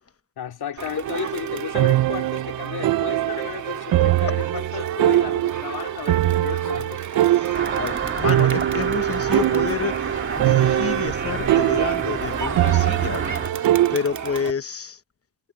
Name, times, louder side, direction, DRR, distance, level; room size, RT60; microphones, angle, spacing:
voice 1, 0.4-7.3, left 9 dB, 75° left, 3.5 m, -33 dB
Crowd, 0.8-14.5, right 6 dB, 50° right, 2.1 m, -33 dB
sound 1, 1.1-14.0, right 14 dB, 65° right, 0.5 m, -22 dB
voice 2, 7.2-13.2 13.9-15.0, left 6 dB, 35° left, 1.1 m, -29 dB
sound 2, 7.5-13.5, right 4 dB, 30° right, 2.0 m, -30 dB
cardioid pair, 110°, 39 cm